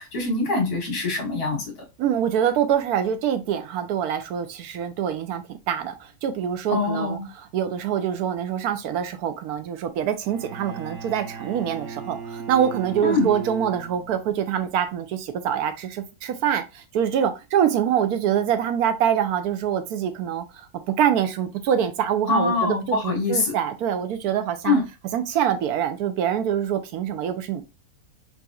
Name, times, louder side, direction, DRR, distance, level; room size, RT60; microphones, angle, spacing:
voice 1, 0.0-1.7 6.7-7.3 13.0-13.3 22.3-23.5 24.6-24.8, left 3 dB, 80° left, 2.2 m, -24 dB
voice 2, 2.0-20.7 21.0-24.8 25.1-27.6, right 9 dB, 80° right, 1.1 m, -25 dB
Bowed string instrument, 10.3-14.4, right 5 dB, 50° right, 0.8 m, -37 dB
4.7 x 2.7 x 2.3 m
omnidirectional pair, 1.6 m